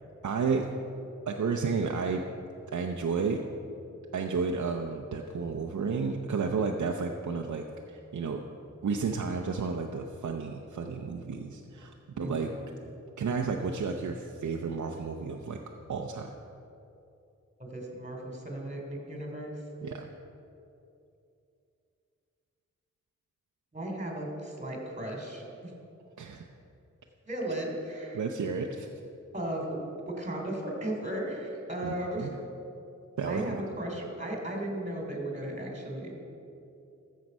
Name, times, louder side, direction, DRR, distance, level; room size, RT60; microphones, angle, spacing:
voice 1, 0.2-0.7 1.3-2.2 2.7-3.4 4.1-8.4 8.8-12.5 13.2-15.6 15.9-16.3 19.8-20.1 26.2-26.4 28.1-28.9 31.8-32.3 33.2-33.6, right 5 dB, 80° right, 2 dB, 0.7 m, -32 dB
voice 2, 12.2-12.6 17.6-19.5 23.7-25.7 27.3-28.2 29.3-32.3 33.2-36.1, right 1 dB, 25° right, 0 dB, 3.2 m, -36 dB
13.5 x 7.4 x 5.4 m, 2.7 s
cardioid pair, 50°, 29 cm